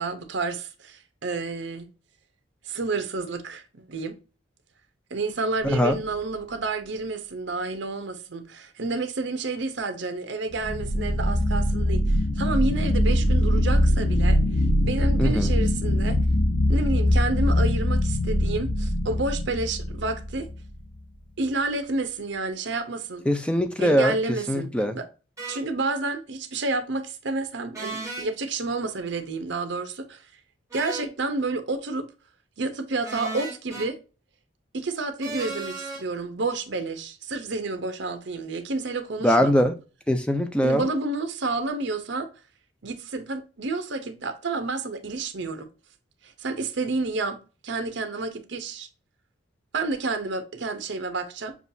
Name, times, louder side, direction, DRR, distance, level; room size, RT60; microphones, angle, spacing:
voice 1, 0.0-1.9 2.6-4.2 5.1-14.4 14.8-16.2 16.7-20.5 21.4-23.2 23.8-25.1 25.5-30.2 30.7-32.1 32.6-34.0 34.7-39.7 40.6-42.3 42.8-45.7 46.4-47.4 47.6-48.9 49.7-51.6, right 3 dB, 65° right, 0.7 m, -30 dB
sound 1, 5.6-6.2 10.5-20.7, left 1 dB, 65° left, 0.7 m, -23 dB
voice 2, 5.6-6.0 15.2-15.5 23.3-24.2 24.5-25.0 39.2-39.7 40.1-40.8, equal, 5° left, 0.4 m, -22 dB
sound 2, 25.4-25.6 27.7-28.3 30.7-31.1 33.0-33.9 35.2-36.0, right 3 dB, 15° right, 1.4 m, -35 dB
7.0 x 2.3 x 2.6 m
head